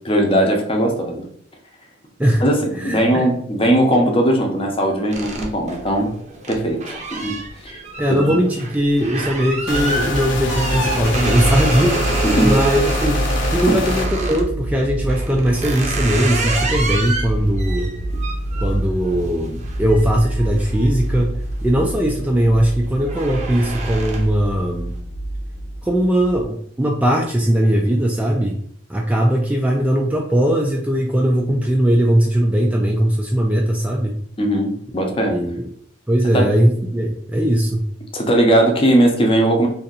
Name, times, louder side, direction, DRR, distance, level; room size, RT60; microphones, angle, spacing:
voice 1, 0.0-1.2 2.4-6.1 6.5-7.4 7.6-7.8 8.1-8.2 12.2-12.6 13.7-13.8 34.4-35.4 36.3-36.5 38.1-39.7, right 1 dB, 30° left, 2 dB, 0.7 m, -18 dB
voice 2, 2.8-3.3 8.0-17.9 18.6-21.3 21.6-24.9 25.8-28.6 28.9-34.2 35.3-35.7 36.1-37.9, equal, 10° right, 0 dB, 0.3 m, -19 dB
sound 1, 5.1-14.5 15.1-21.5 21.9-22.3 22.6-24.5, right 3 dB, 40° right, 0.6 m, -28 dB
sound 2, 9.7-14.1, left 4 dB, 80° left, 0.6 m, -25 dB
sound 3, 9.7-26.5, right 1 dB, 80° right, 0.7 m, -26 dB
2.7 x 2.5 x 3.9 m, 0.64 s
head